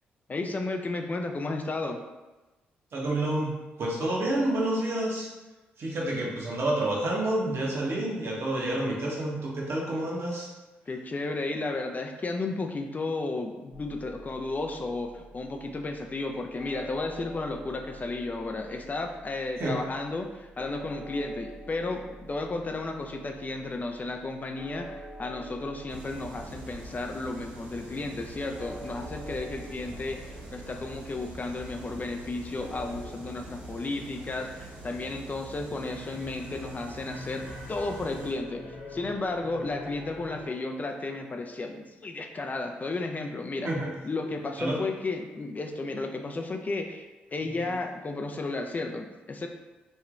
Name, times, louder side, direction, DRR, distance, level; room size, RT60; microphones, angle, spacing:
voice 1, 0.3-2.0 10.9-38.6 38.9-43.7 44.0-49.5, left 2 dB, 30° left, 4 dB, 0.3 m, -33 dB
voice 2, 2.9-5.3 5.8-10.5 19.6-19.8 43.6-43.9 44.6-44.8, right 1 dB, 50° right, -3 dB, 0.9 m, -29 dB
sound 1, 13.7-33.1, right 1 dB, 20° right, 0.8 m, -47 dB
sound 2, 25.9-38.3, right 2 dB, 75° right, 1.4 m, -44 dB
sound 3, 35.8-40.7, left 2 dB, 70° left, 0.9 m, -44 dB
3.1 x 2.8 x 2.4 m, 1.1 s
hypercardioid pair, 40°, 5 cm